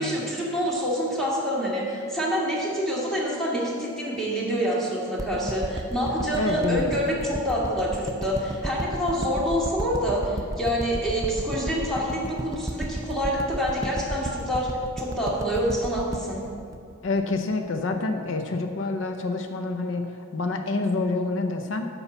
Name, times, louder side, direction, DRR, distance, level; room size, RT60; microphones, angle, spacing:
voice 1, 0.0-14.7 15.0-16.4, equal, ahead, -6 dB, 2.1 m, -27 dB
sound 1, 5.2-17.5 17.9-18.0, right 1 dB, 15° right, 0.5 m, -33 dB
voice 2, 6.3-7.0 17.0-21.9, left 3 dB, 70° left, 6 dB, 0.6 m, -27 dB
9.7 x 5.5 x 7.0 m, 2.4 s
head